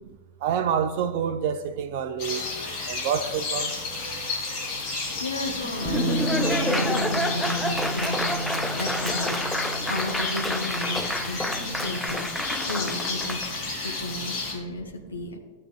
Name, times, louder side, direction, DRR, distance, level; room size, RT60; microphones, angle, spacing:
voice 1, 0.4-2.5 2.9-3.7, right 8 dB, 50° right, 0.5 m, -27 dB
sound 1, 2.2-14.5, left 3 dB, 40° left, 2.6 m, -32 dB
voice 2, 4.9-9.4 9.9-13.4 13.7-15.4, left 2 dB, 75° left, 1.0 m, -34 dB
Laughter / Applause, 5.6-13.5, left 1 dB, 5° left, 0.5 m, -29 dB
Bass guitar, 5.9-12.1, right 1 dB, 25° right, 1.7 m, -33 dB
13.5 x 7.4 x 2.2 m
figure-of-eight pair, 90°, 0 cm